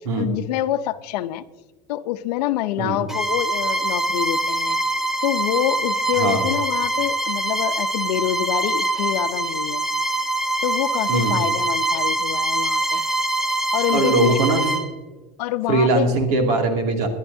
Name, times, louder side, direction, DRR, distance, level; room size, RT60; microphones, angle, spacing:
voice 1, 0.1-1.4 1.9-4.8 5.2-9.8 10.6-13.0 13.7-14.4 15.4-16.1, left 13 dB, 90° left, 11 dB, 0.7 m, -26 dB
Bowed string instrument, 3.1-14.9, right 2 dB, ahead, 0.4 m, -24 dB
voice 2, 13.9-14.6 15.7-17.1, right 2 dB, 65° right, 3 dB, 2.5 m, -20 dB
21.5 x 11.5 x 2.7 m, 1.2 s
supercardioid pair, 170°, 20 cm